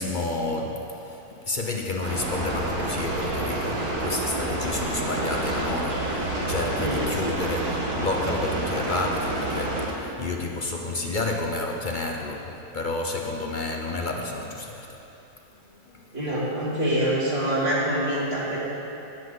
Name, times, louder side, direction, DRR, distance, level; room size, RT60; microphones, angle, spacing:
voice 1, 0.0-15.0 15.6-16.1, left 2 dB, 45° left, 1 dB, 0.7 m, -30 dB
sound 1, 2.0-9.9, right 2 dB, 60° right, 2.0 m, -28 dB
voice 2, 16.1-18.6, right 1 dB, 35° right, -8 dB, 2.9 m, -25 dB
19.0 x 7.8 x 3.9 m, 3.0 s
omnidirectional pair, 1.8 m